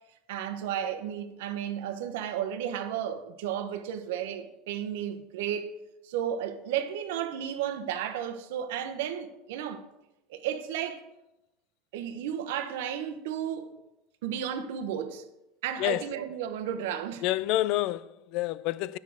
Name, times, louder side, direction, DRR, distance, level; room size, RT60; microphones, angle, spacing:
voice 1, 0.3-5.7 6.0-9.8 10.3-11.1 11.9-13.7 14.2-15.2 15.6-17.2, right 9 dB, 85° right, 0.9 m, -33 dB
voice 2, 17.2-19.0, left 16 dB, 60° left, 0.3 m, -28 dB
9.4 x 6.3 x 6.4 m
supercardioid pair, 140°, 0 cm